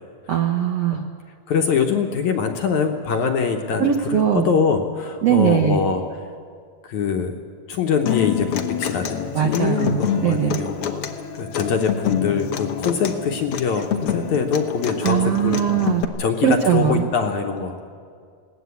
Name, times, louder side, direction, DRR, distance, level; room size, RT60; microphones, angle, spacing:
voice 1, 0.3-1.1 3.8-4.5 5.2-5.8 9.3-10.6 15.0-16.0 16.4-17.0, right 9 dB, 70° right, 3 dB, 1.5 m, -20 dB
voice 2, 1.5-6.0 6.8-7.3 7.7-11.1 11.4-15.6 16.2-17.9, left 6 dB, 65° left, 4 dB, 2.0 m, -23 dB
Human voice / Acoustic guitar, 8.1-16.0, left 8 dB, 85° left, 1.2 m, -27 dB
21.0 x 17.5 x 8.3 m, 2.2 s
omnidirectional pair, 4.2 m